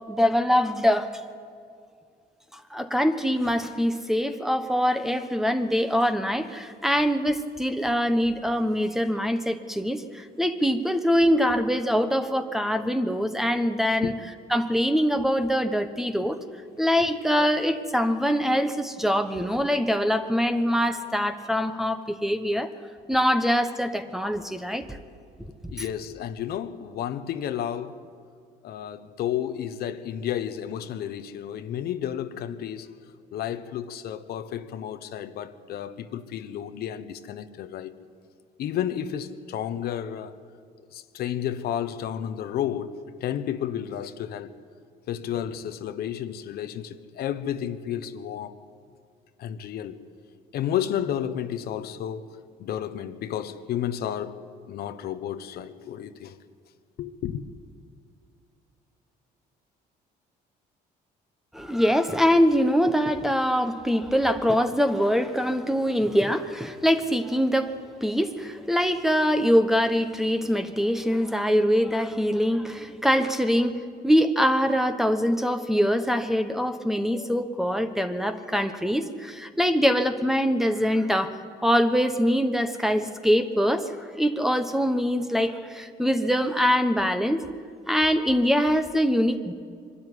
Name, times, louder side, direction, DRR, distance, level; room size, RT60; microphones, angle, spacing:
voice 1, 0.1-1.1 2.5-14.1 14.5-16.4 16.8-22.7 23.1-24.9 25.6-25.7 61.5-81.4 81.6-87.5 87.9-89.5, equal, ahead, 1.1 m, -23 dB
voice 2, 25.7-28.0 28.6-32.9 33.3-37.9 38.6-40.3 40.9-44.5 45.1-48.5 49.4-50.0 50.5-52.3 52.6-54.4 54.7-56.4 57.0-57.4, left 10 dB, 65° left, 1.0 m, -31 dB
23.5 x 12.5 x 9.9 m
cardioid pair, 110°, 17 cm